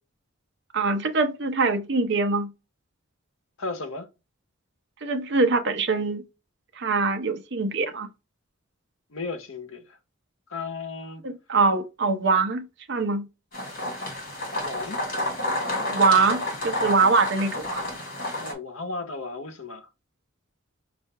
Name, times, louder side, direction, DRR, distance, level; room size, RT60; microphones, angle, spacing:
voice 1, 0.7-2.5 5.0-6.2 6.8-8.1 11.2-13.3 15.9-18.0, right 4 dB, 55° right, 0.7 m, -23 dB
voice 2, 3.6-4.1 9.1-10.0 10.5-11.2 14.6-15.0 18.4-19.9, left 3 dB, 80° left, 0.8 m, -34 dB
sound 1, 13.5-18.5, left 1 dB, 45° left, 2.1 m, -30 dB
5.5 x 2.5 x 3.4 m
head